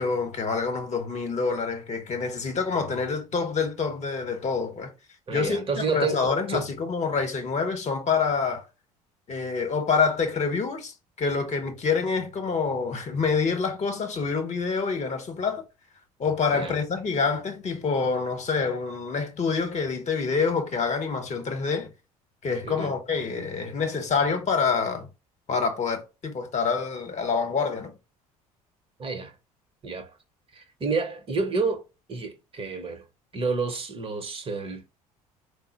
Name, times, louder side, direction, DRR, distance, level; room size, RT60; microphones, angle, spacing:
voice 1, 0.0-4.9 5.3-8.6 9.3-15.6 16.2-21.9 22.4-25.1 25.5-27.9, left 5 dB, 40° left, 1.0 m, -27 dB
voice 2, 5.3-6.7 16.5-16.7 22.6-22.9 29.0-29.3 29.8-30.1 30.5-31.8 32.1-33.0 33.3-34.8, right 4 dB, 30° right, 1.0 m, -29 dB
4.1 x 2.0 x 4.0 m
figure-of-eight pair, 55°, 19 cm